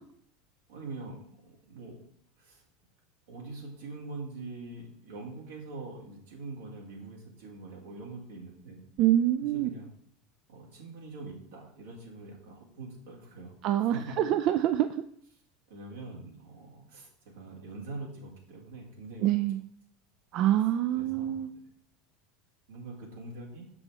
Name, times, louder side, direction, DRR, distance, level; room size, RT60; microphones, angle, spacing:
voice 1, 0.7-2.0 2.4-2.6 3.3-8.8 9.4-9.9 10.5-13.5 13.9-14.2 15.7-19.4 20.9-21.5 22.7-23.7, right 3 dB, 85° right, -1 dB, 2.0 m, -43 dB
voice 2, 9.0-9.7 13.6-15.0 19.2-19.6 20.3-21.5, right 12 dB, 55° right, 10 dB, 0.3 m, -26 dB
6.0 x 5.9 x 3.3 m, 0.65 s
hypercardioid pair, 100°, 0 cm